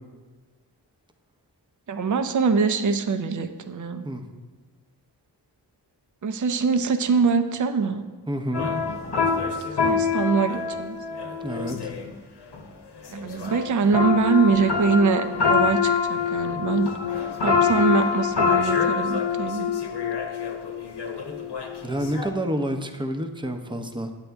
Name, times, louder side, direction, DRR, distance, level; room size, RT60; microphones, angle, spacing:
voice 1, 1.9-4.1 6.2-8.1 9.8-11.0 13.1-16.9 17.4-19.7, right 5 dB, 45° right, 8 dB, 0.6 m, -23 dB
voice 2, 8.3-8.7 11.4-11.8 21.8-24.1, right 1 dB, 10° right, 5 dB, 0.7 m, -28 dB
sound 1, 8.5-12.1 12.5-12.7 13.0-22.3, left 6 dB, 70° left, 1.0 m, -25 dB
9.1 x 8.2 x 3.5 m, 1.4 s
cardioid pair, 45°, 42 cm